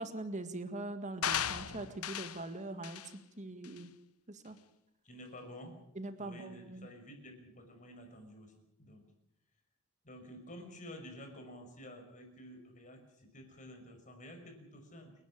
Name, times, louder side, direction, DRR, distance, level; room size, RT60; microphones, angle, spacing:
voice 1, 0.0-3.9 4.3-4.6 6.0-6.9, right 2 dB, 35° right, 9 dB, 2.0 m, -42 dB
sound 1, 1.2-2.4 2.8-3.1 3.6-3.8, left 9 dB, 90° left, 1.1 m, -36 dB
voice 2, 5.0-5.8 6.2-9.0 10.0-15.1, equal, 35° left, 4 dB, 5.7 m, -51 dB
29.0 x 12.0 x 8.7 m, 0.80 s
head